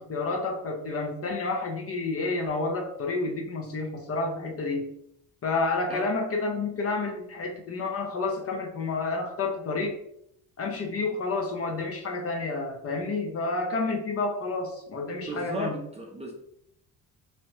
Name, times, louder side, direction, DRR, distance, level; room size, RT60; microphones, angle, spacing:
voice 1, 0.0-4.9 5.4-10.0 10.6-15.8, left 3 dB, 40° left, 2 dB, 0.5 m, -30 dB
voice 2, 15.2-16.3, right 1 dB, 15° right, -1 dB, 0.4 m, -35 dB
2.7 x 2.1 x 3.0 m, 0.76 s
cardioid pair, 95°, 39 cm